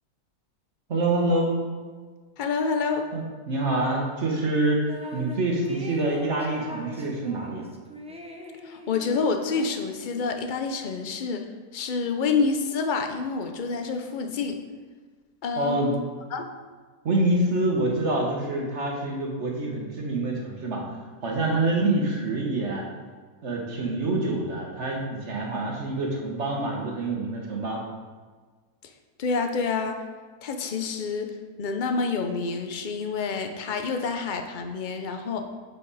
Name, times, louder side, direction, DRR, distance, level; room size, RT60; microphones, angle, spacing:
voice 1, 0.9-1.5 3.1-7.6 15.6-15.9 17.0-20.8 21.2-22.8 23.4-27.8, right 2 dB, 50° right, -1 dB, 1.4 m, -26 dB
voice 2, 2.4-3.1 8.6-11.4 11.7-14.6 15.4-16.0 16.3-16.5 29.2-30.0 30.4-31.3 31.6-35.5, left 4 dB, 55° left, 5 dB, 0.5 m, -28 dB
sound 1, 4.5-5.4 5.7-10.3, equal, 10° right, 0.4 m, -41 dB
7.5 x 5.8 x 4.1 m, 1.5 s
omnidirectional pair, 1.6 m